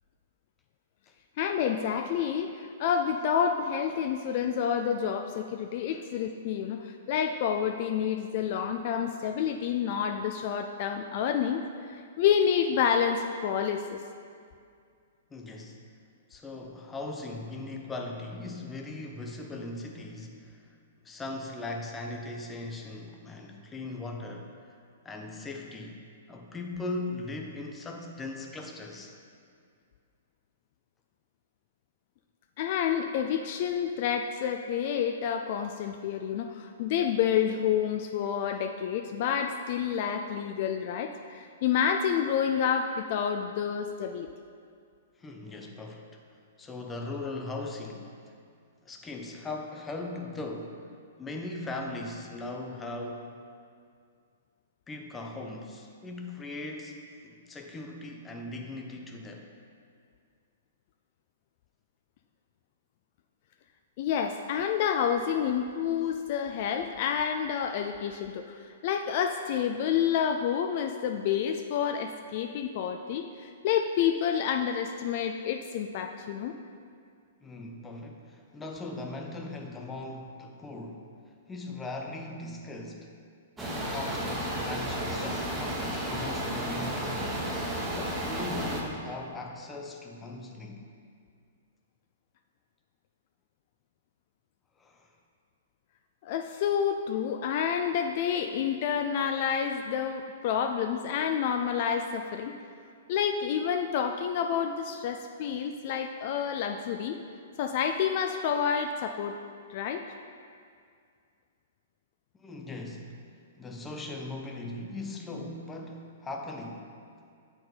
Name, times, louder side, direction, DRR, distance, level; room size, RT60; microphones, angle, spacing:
voice 1, 1.4-14.0 32.6-44.3 64.0-76.5 96.2-102.6 103.1-107.2 107.6-109.4 109.7-110.0, left 8 dB, 50° left, 5 dB, 0.3 m, -29 dB
voice 2, 15.3-15.8 16.3-20.8 21.0-24.7 25.0-26.0 26.3-29.1 45.2-46.2 46.6-48.3 48.8-50.9 51.2-53.3 54.9-59.5 77.4-83.2 83.9-87.4 88.0-90.8 94.8-95.1 112.3-113.3 113.6-116.9, left 2 dB, 15° left, 2 dB, 0.7 m, -39 dB
sound 1, 83.6-88.8, equal, 10° right, 1.0 m, -32 dB
7.5 x 4.5 x 4.1 m, 2.3 s
hypercardioid pair, 140°, 0 cm